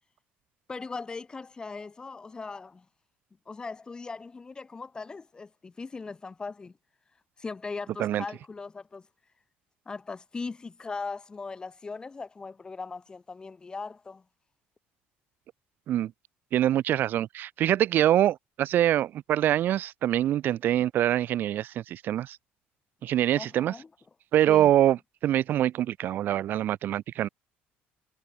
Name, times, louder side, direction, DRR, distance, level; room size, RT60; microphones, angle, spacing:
voice 1, 0.7-2.8 3.5-6.7 7.4-9.0 9.9-14.2 23.4-23.9 24.5-24.7, left 4 dB, 20° left, 2.5 m, -39 dB
voice 2, 16.5-22.4 23.0-23.7 24.3-27.3, right 12 dB, 55° right, 0.7 m, -24 dB
cardioid pair, 125°, 4 cm